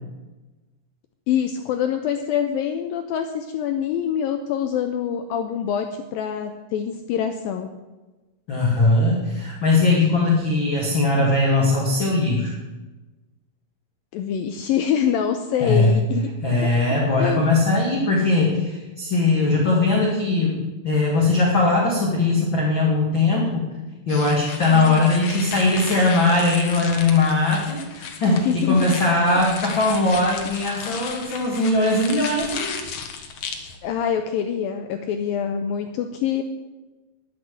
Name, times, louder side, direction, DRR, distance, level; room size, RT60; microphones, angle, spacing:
voice 1, 1.3-7.7 14.1-16.3 16.6-16.7 17.2-17.5 24.7-25.1 28.5-28.9 33.8-36.4, left 8 dB, 85° left, 6 dB, 2.1 m, -25 dB
voice 2, 8.5-12.5 15.6-16.0 16.4-23.7 24.1-32.8, left 2 dB, 40° left, -3 dB, 1.8 m, -20 dB
sound 1, 24.1-33.8, left 6 dB, 65° left, 2.1 m, -35 dB
11.5 x 7.9 x 8.0 m, 1.2 s
omnidirectional pair, 4.9 m